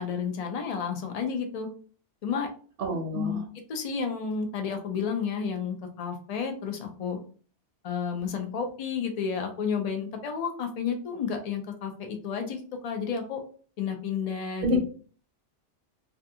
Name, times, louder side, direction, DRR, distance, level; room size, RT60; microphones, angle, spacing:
voice 1, 0.0-1.7 2.2-2.5 3.1-7.2 7.8-13.4 13.8-14.8, left 6 dB, 60° left, 4 dB, 0.4 m, -31 dB
voice 2, 2.8-3.4 14.6-14.8, left 1 dB, 60° right, 1 dB, 0.7 m, -27 dB
2.3 x 2.3 x 2.6 m, 0.42 s
omnidirectional pair, 1.2 m